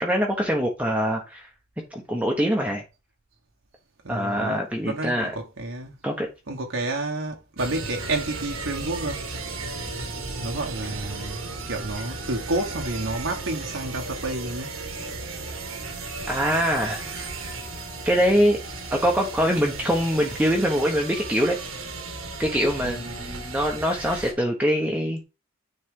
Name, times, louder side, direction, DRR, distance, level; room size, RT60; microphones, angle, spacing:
voice 1, 0.0-1.5 1.9-2.8 4.1-5.3 6.0-6.3 16.3-17.1 18.0-18.6 18.9-21.6 22.4-25.2, equal, 5° right, 1.1 m, -23 dB
voice 2, 4.0-5.9 6.5-9.3 10.4-14.7 22.8-23.3, right 2 dB, 65° right, 1.3 m, -30 dB
sound 1, 7.6-24.3, right 3 dB, 85° right, 1.9 m, -35 dB
9.5 x 4.2 x 3.7 m
head